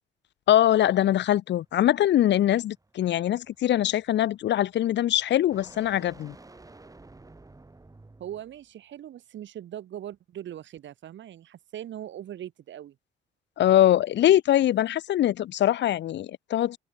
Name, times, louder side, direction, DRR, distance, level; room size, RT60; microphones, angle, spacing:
voice 1, 0.5-6.3 13.6-16.8, left 12 dB, 65° left, 0.7 m, -22 dB
sound 1, 1.6-8.7, right 2 dB, 15° right, 3.6 m, -53 dB
voice 2, 8.2-13.0, right 11 dB, 70° right, 2.5 m, -40 dB
cardioid pair, 90°, 20 cm